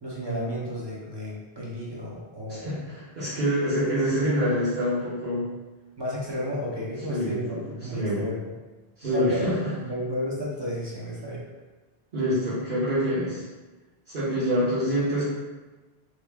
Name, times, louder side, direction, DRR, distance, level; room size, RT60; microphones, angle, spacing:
voice 1, 0.0-2.7 6.0-8.4 9.1-9.6 9.8-11.4, equal, 30° right, -6 dB, 0.6 m, -32 dB
voice 2, 2.5-5.5 7.1-8.3 9.0-9.7 12.1-13.4 14.1-15.2, equal, 55° right, -13 dB, 1.1 m, -26 dB
3.0 x 2.6 x 3.3 m, 1.2 s
omnidirectional pair, 1.1 m